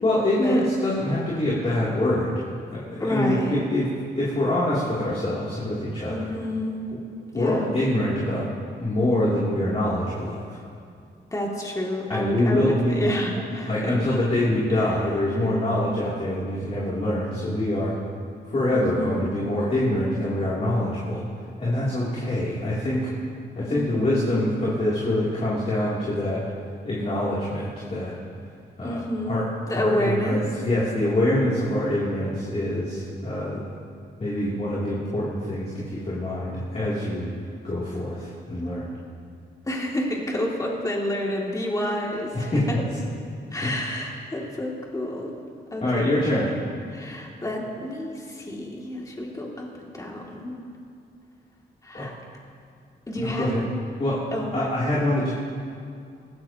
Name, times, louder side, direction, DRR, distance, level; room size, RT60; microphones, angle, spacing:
voice 1, 0.0-2.4 2.7-3.9 4.1-6.3 7.3-8.5 8.8-10.6 12.1-13.1 13.7-17.9 18.5-21.2 21.6-23.1 23.6-26.4 26.8-28.1 28.8-29.0 29.3-33.6 34.2-37.3 37.6-38.9 42.3-42.8 43.6-43.8 45.8-46.6 51.9-52.1 53.1-53.6 54.0-55.3, left 1 dB, 35° left, -7 dB, 3.2 m, -25 dB
voice 2, 3.0-3.6 6.1-6.8 7.3-7.8 11.3-14.0 18.7-19.3 23.7-24.3 28.8-30.4 39.6-42.8 43.5-45.3 45.7-46.1 46.9-49.7 49.9-50.6 51.8-52.1 53.1-53.6 54.3-54.6, left 1 dB, 20° left, -2 dB, 2.6 m, -29 dB
21.0 x 15.5 x 3.0 m, 2.3 s
cardioid pair, 90°, 18 cm